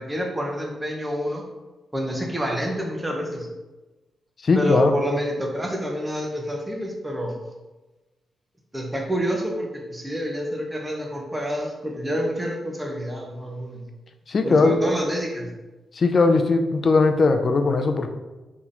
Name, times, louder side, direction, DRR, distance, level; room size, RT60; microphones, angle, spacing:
voice 1, 0.0-1.4 1.9-3.5 4.5-7.3 8.7-13.8 14.4-15.5, equal, 15° right, 0 dB, 1.3 m, -27 dB
voice 2, 4.4-4.9 14.3-14.8 15.9-18.1, left 3 dB, 50° left, 6 dB, 0.7 m, -19 dB
4.7 x 3.7 x 5.5 m, 1.1 s
cardioid pair, 60°, 0 cm